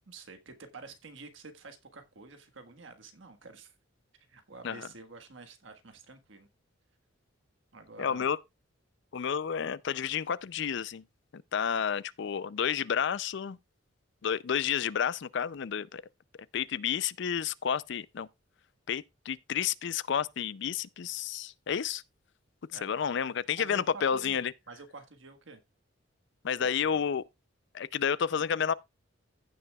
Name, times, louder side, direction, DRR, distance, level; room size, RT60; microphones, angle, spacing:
voice 1, 0.1-3.7 4.2-6.5 7.7-8.3 22.7-23.0 23.5-25.6 26.6-27.0, right 3 dB, 70° right, 1.5 m, -49 dB
voice 2, 8.0-8.4 9.1-11.0 11.3-13.6 14.2-16.0 16.5-18.3 18.9-22.0 22.7-24.5 26.4-27.2 27.7-28.7, left 7 dB, 60° left, 0.4 m, -30 dB
15.5 x 6.7 x 2.3 m
head